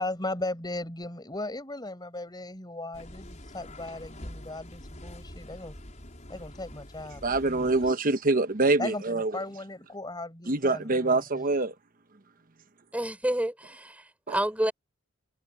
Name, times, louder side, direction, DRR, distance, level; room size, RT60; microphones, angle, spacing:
voice 1, 0.0-5.7 6.3-7.7 8.8-11.4, left 2 dB, 20° left, 6.6 m, -37 dB
sound 1, 2.9-7.9, left 1 dB, 35° left, 5.5 m, -45 dB
voice 2, 7.2-9.3 10.5-11.7 14.3-14.4, right 3 dB, 40° right, 1.0 m, -25 dB
voice 3, 12.9-14.7, right 1 dB, 5° right, 6.3 m, -29 dB
head